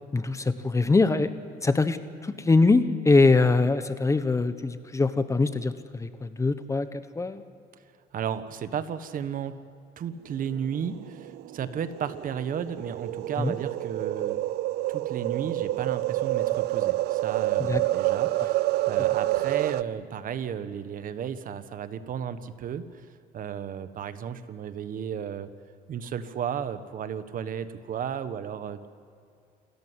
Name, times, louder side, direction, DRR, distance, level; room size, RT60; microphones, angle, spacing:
voice 1, 0.1-1.3 1.6-7.4 13.4-13.5 17.6-17.8, left 3 dB, 20° left, 11 dB, 1.1 m, -23 dB
voice 2, 8.1-9.6 10.0-14.4 14.9-23.1 23.3-25.5 25.9-28.9, right 8 dB, 55° right, 12 dB, 1.4 m, -34 dB
sound 1, 10.7-19.8, right 17 dB, 75° right, 0.6 m, -28 dB
28.5 x 14.0 x 9.7 m, 2.4 s
cardioid pair, 110°, 17 cm